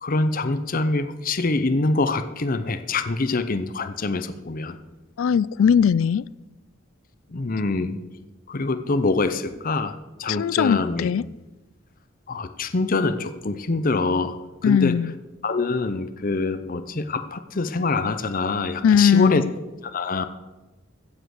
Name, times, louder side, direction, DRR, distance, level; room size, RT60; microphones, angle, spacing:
voice 1, 0.0-4.8 7.3-8.0 8.5-11.1 12.3-14.4 14.6-15.0 15.4-19.4 19.8-20.2, left 3 dB, 45° left, 0.7 m, -25 dB
voice 2, 5.2-6.3 10.4-11.2 14.6-15.1 18.8-19.5, left 7 dB, 75° left, 0.3 m, -19 dB
15.5 x 7.5 x 6.5 m
head